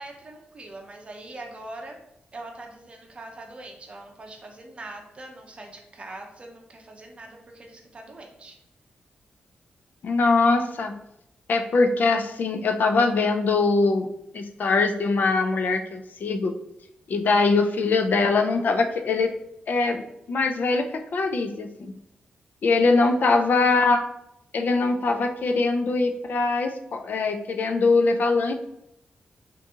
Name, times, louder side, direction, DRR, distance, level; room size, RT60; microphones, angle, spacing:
voice 1, 0.0-2.0 2.3-8.6 22.8-23.2, right 2 dB, 35° right, 2 dB, 0.6 m, -42 dB
voice 2, 10.0-11.0 11.5-14.1 14.3-16.5 17.1-19.3 19.7-20.0 20.3-21.9 22.6-24.0 24.5-28.5, left 3 dB, 60° left, 5 dB, 0.3 m, -22 dB
2.7 x 2.5 x 3.5 m, 0.79 s
wide cardioid pair, 115°, 3 cm